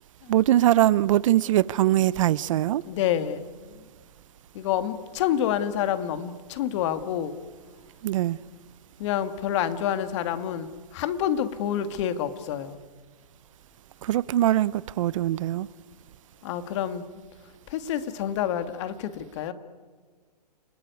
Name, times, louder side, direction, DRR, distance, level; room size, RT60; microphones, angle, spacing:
voice 1, 0.3-2.8 8.0-8.4 14.0-15.7, right 13 dB, 50° right, 0.7 m, -22 dB
voice 2, 2.8-3.5 4.5-7.4 9.0-12.8 16.4-17.0 17.7-19.5, left 10 dB, 45° left, 2.1 m, -28 dB
29.5 x 20.0 x 9.6 m
hypercardioid pair, 135°, 21 cm